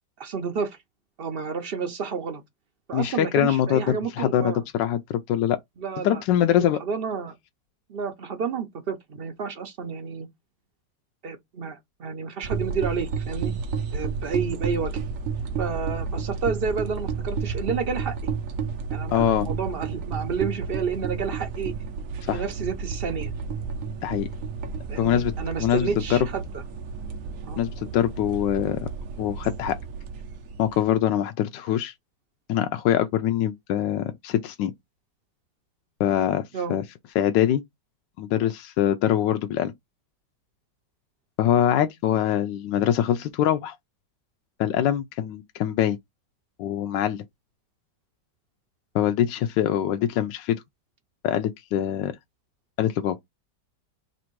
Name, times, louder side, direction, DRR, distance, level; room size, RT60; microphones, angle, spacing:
voice 1, 0.2-0.8 1.2-2.4 2.9-4.6 5.8-6.2 6.6-7.3 7.9-10.3 11.2-13.5 13.9-15.0 15.6-18.3 18.9-21.7 22.3-23.3 24.9-26.6 27.4-27.6 36.5-36.8, right 5 dB, 80° right, 0.5 m, -30 dB
voice 2, 2.9-5.6 6.0-6.8 19.1-19.5 22.3-22.4 24.0-24.3 25.0-25.3 25.6-26.2 27.6-28.9 29.2-29.8 30.6-31.9 32.5-34.7 36.0-36.4 36.7-36.8 37.1-37.6 38.2-39.7 41.4-43.7 44.6-46.0 46.6-47.2 48.9-50.6 51.2-52.1 52.8-53.2, left 10 dB, 80° left, 1.2 m, -23 dB
sound 1, 12.4-30.9, right 5 dB, 65° right, 0.8 m, -32 dB
3.4 x 2.6 x 4.5 m
omnidirectional pair, 1.9 m